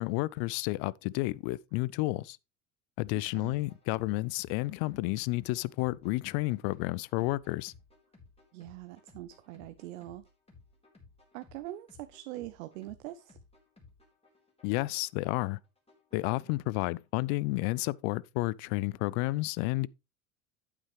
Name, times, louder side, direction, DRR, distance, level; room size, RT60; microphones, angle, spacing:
voice 1, 0.0-2.4 3.0-7.7 14.6-15.6 16.1-19.9, left 21 dB, 55° left, 0.5 m, -31 dB
sound 1, 3.0-18.0, left 3 dB, 15° left, 4.4 m, -59 dB
voice 2, 8.5-10.2 11.3-13.4, right 15 dB, 70° right, 0.7 m, -43 dB
8.8 x 8.3 x 3.3 m
hypercardioid pair, 80°, 41 cm